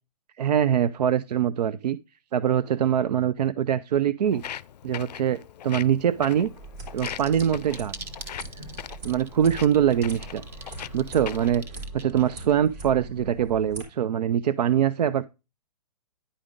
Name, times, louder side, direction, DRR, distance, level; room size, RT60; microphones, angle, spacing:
voice 1, 0.4-2.0 2.3-4.4 4.8-6.5 6.9-8.1 9.0-10.4 10.9-15.3, right 9 dB, 80° right, 0.4 m, -23 dB
Walk footsteps, 4.3-11.6, left 10 dB, 75° left, 0.4 m, -41 dB
sound 1, 6.4-13.8, right 2 dB, 45° right, 3.8 m, -41 dB
sound 2, 7.0-12.5, right 4 dB, 10° right, 0.5 m, -43 dB
10.0 x 5.0 x 3.6 m
hypercardioid pair, 145°, 21 cm